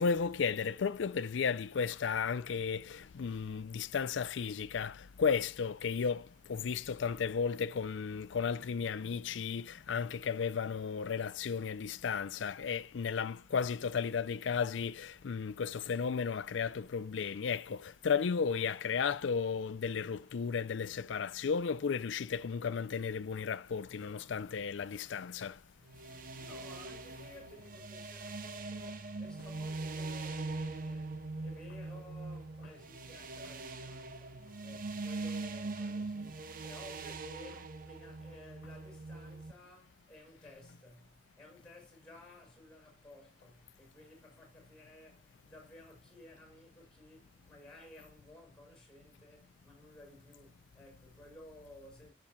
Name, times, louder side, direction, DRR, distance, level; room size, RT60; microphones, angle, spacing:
voice 1, 0.0-25.6, left 6 dB, 85° left, 0.5 m, -34 dB
sound 1, 25.8-39.5, right 3 dB, 50° right, 0.8 m, -42 dB
voice 2, 26.4-52.1, left 1 dB, 5° left, 6.3 m, -56 dB
14.5 x 7.1 x 2.3 m
head